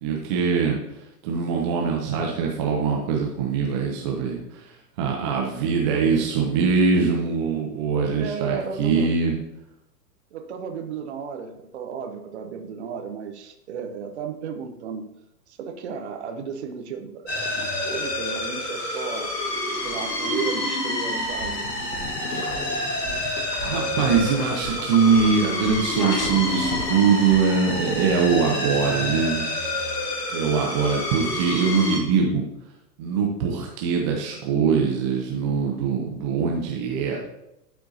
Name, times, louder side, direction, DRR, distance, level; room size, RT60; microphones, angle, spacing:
voice 1, 0.0-0.8 1.2-4.7 5.0-9.3 23.6-29.5 30.3-32.4 33.0-37.2, right 5 dB, 20° right, 0 dB, 0.5 m, -22 dB
voice 2, 8.2-9.2 10.3-15.1 15.5-19.3 19.8-21.8, right 6 dB, 40° right, 5 dB, 0.9 m, -34 dB
sound 1, 17.3-32.0, left 1 dB, 40° left, 2.4 m, -28 dB
sound 2, 21.1-27.4, equal, ahead, 2.0 m, -41 dB
sound 3, 21.6-25.4 26.0-29.0, left 4 dB, 65° left, 0.9 m, -37 dB
12.0 x 4.4 x 2.7 m, 0.86 s
figure-of-eight pair, 110°, 49 cm